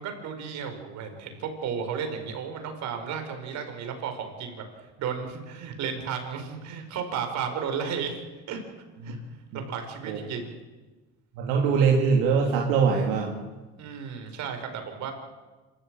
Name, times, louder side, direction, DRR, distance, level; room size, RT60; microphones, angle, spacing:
voice 1, 0.0-4.7 5.0-8.2 8.5-8.6 9.0-9.2 9.5-10.5 13.8-15.1, right 6 dB, 60° right, 6 dB, 5.2 m, -33 dB
voice 2, 11.4-13.4, right 5 dB, 80° right, 1 dB, 3.0 m, -22 dB
26.5 x 15.0 x 9.0 m, 1.2 s
supercardioid pair, 105°, 32 cm